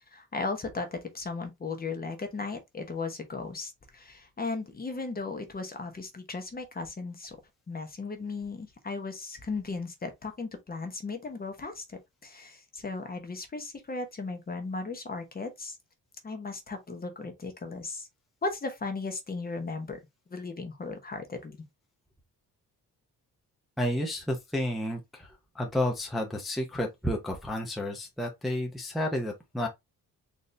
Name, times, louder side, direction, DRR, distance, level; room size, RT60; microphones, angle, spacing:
voice 1, 0.1-7.4 7.7-15.8 16.2-18.1 18.4-20.0 20.3-21.6, left 3 dB, 25° left, 0.9 m, -36 dB
voice 2, 23.8-25.3 25.5-29.7, left 1 dB, ahead, 0.6 m, -31 dB
4.1 x 2.6 x 3.3 m
wide cardioid pair, 150°, 35 cm